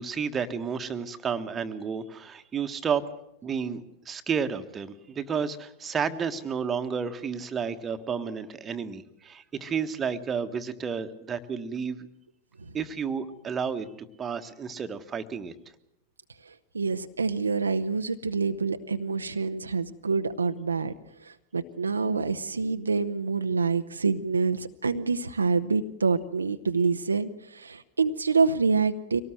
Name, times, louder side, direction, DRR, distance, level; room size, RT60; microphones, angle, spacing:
voice 1, 0.0-3.0 3.4-12.1 12.7-13.9 14.2-15.5, right 6 dB, 20° right, 8 dB, 1.4 m, -31 dB
voice 2, 16.4-20.9 21.2-29.2, right 4 dB, 75° right, 8 dB, 0.8 m, -27 dB
24.5 x 18.5 x 7.8 m, 0.83 s
figure-of-eight pair, 90°, 0 cm